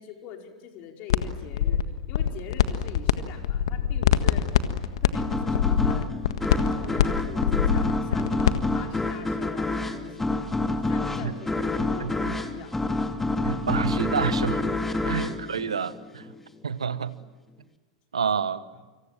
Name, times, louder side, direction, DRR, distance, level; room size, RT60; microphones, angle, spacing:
voice 1, 0.0-4.5 5.0-6.1 6.7-10.5 10.8-12.8 18.7-18.8, left 7 dB, 45° left, 3 dB, 5.0 m, -43 dB
sound 1, 1.1-1.2 1.5-3.1 3.4-8.6, left 11 dB, 60° left, 1.6 m, -23 dB
sound 2, 5.1-16.4, left 2 dB, 10° left, 2.4 m, -28 dB
voice 2, 12.0-12.3 13.4-14.6 15.0-16.3 16.6-17.2 18.1-18.6, right 7 dB, 75° right, 15 dB, 1.3 m, -28 dB
29.0 x 26.0 x 7.6 m, 1.2 s
figure-of-eight pair, 90°, 3 cm